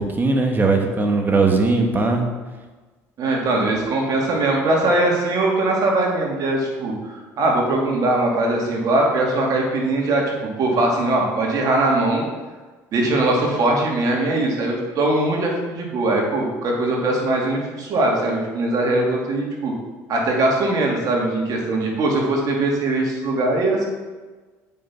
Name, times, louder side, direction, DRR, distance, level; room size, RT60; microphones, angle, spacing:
voice 1, 0.0-2.2, right 3 dB, 25° right, 3 dB, 1.7 m, -19 dB
voice 2, 3.2-10.2 10.6-12.3 12.9-19.7 20.1-23.9, right 2 dB, 55° right, -1 dB, 2.7 m, -21 dB
8.5 x 5.7 x 5.7 m, 1.3 s
supercardioid pair, 80°, 7 cm